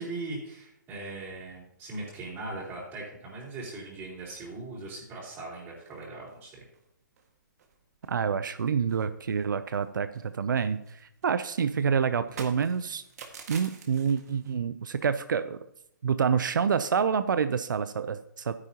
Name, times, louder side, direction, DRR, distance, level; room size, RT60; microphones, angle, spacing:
voice 1, 0.0-6.6, right 2 dB, 25° right, -6 dB, 3.9 m, -39 dB
sound 1, 5.8-6.4 6.7-6.8 7.2-7.3 7.6-8.2 8.5-9.9 10.1-14.5, right 6 dB, 50° right, 1.8 m, -48 dB
voice 2, 8.1-13.0 13.5-15.6 16.0-18.5, right 6 dB, 75° right, 12 dB, 0.6 m, -27 dB
12.0 x 9.8 x 2.9 m, 0.74 s
hypercardioid pair, 145°, 11 cm